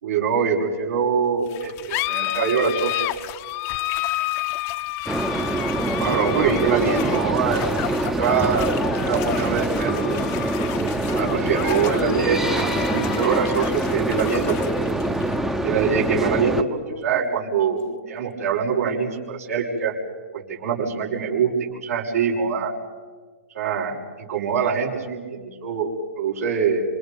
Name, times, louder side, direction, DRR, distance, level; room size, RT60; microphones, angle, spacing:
voice 1, 0.0-3.0 6.0-7.6 8.2-10.0 11.1-14.7 15.6-19.9 20.3-21.5 21.8-22.7 23.5-26.8, right 6 dB, 70° right, -4 dB, 6.4 m, -24 dB
sound 1, 1.5-18.5, left 17 dB, 30° left, 0.9 m, -31 dB
sound 2, 5.1-16.6, right 1 dB, 5° right, 1.0 m, -24 dB
28.0 x 27.0 x 5.5 m, 1.5 s
hypercardioid pair, 130°, 8 cm